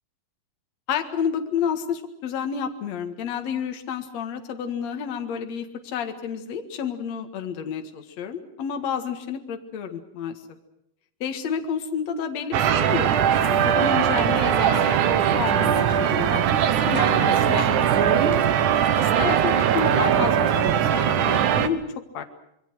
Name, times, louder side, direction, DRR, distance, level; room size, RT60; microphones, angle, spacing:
voice 1, 0.9-10.4 11.2-16.5 16.9-18.4 19.0-21.8 22.1-22.2, left 7 dB, 55° left, 6 dB, 2.7 m, -30 dB
sound 1, 12.5-21.7, right 9 dB, 65° right, 2.4 m, -20 dB
27.0 x 22.0 x 6.3 m, 0.79 s
omnidirectional pair, 4.1 m